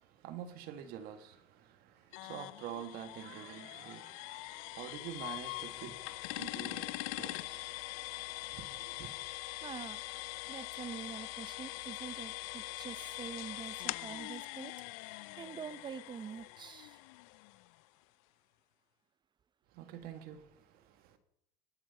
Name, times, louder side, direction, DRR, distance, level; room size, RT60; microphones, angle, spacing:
voice 1, 0.0-9.1 19.7-21.2, right 9 dB, 60° right, 1.7 m, -48 dB
sound 1, 2.1-17.8, left 21 dB, 80° left, 0.5 m, -43 dB
voice 2, 9.6-10.0 10.5-14.7 15.4-17.0, right 7 dB, 25° right, 0.7 m, -45 dB
20.5 x 7.8 x 5.5 m
supercardioid pair, 120°, 17 cm